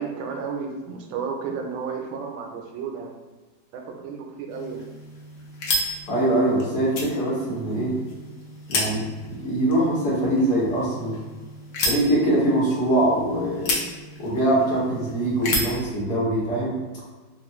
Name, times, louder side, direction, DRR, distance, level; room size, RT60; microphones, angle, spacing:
voice 1, 0.0-3.1 3.7-4.9, right 5 dB, 90° right, 2 dB, 1.3 m, -32 dB
sound 1, 4.5-15.9, left 1 dB, 80° left, 1.4 m, -32 dB
voice 2, 6.1-7.9 8.7-11.2 11.8-13.7 14.2-16.7, right 1 dB, 60° left, -6 dB, 1.6 m, -23 dB
3.6 x 2.4 x 2.9 m, 1.3 s
omnidirectional pair, 2.0 m